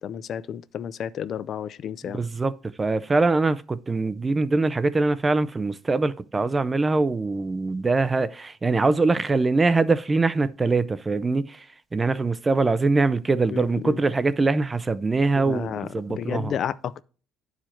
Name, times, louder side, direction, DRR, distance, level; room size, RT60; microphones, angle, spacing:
voice 1, 0.0-2.2 13.5-14.0 15.4-17.0, left 9 dB, 50° left, 0.4 m, -32 dB
voice 2, 2.1-2.5 2.8-11.7 11.9-16.5, right 3 dB, 20° right, 0.4 m, -23 dB
10.0 x 4.8 x 4.4 m
cardioid pair, 130°, 0 cm